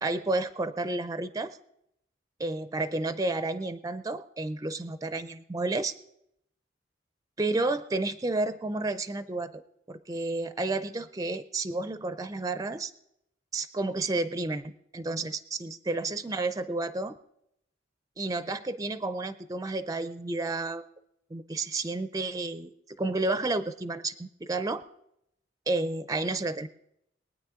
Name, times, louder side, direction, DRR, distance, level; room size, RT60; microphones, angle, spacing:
voice 1, 0.0-1.6 2.4-5.9 7.4-9.6 9.9-12.9 13.5-17.2 18.2-20.8 21.3-22.7 23.0-24.8 25.7-26.7, right 2 dB, 20° right, 12 dB, 0.5 m, -31 dB
23.0 x 9.3 x 3.7 m, 0.78 s
head